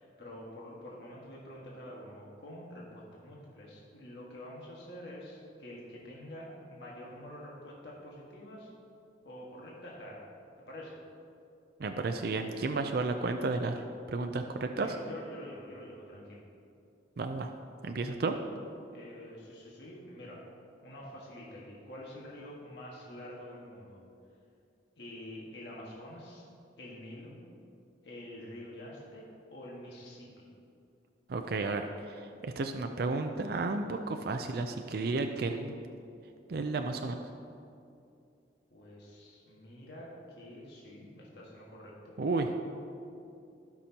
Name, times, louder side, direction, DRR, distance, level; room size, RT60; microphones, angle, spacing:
voice 1, 0.0-8.7 9.2-10.2 10.7-11.0 14.8-16.4 18.9-20.4 20.8-24.0 25.0-26.5 26.8-27.4 28.0-29.2 29.5-30.5 38.7-42.1, left 1 dB, 70° left, -4 dB, 1.6 m, -47 dB
voice 2, 11.8-13.8 14.1-14.9 17.2-17.5 17.8-18.4 31.3-35.7 36.5-37.2 42.2-42.6, right 3 dB, 60° right, 6 dB, 0.5 m, -32 dB
17.5 x 6.0 x 2.9 m, 2.5 s
head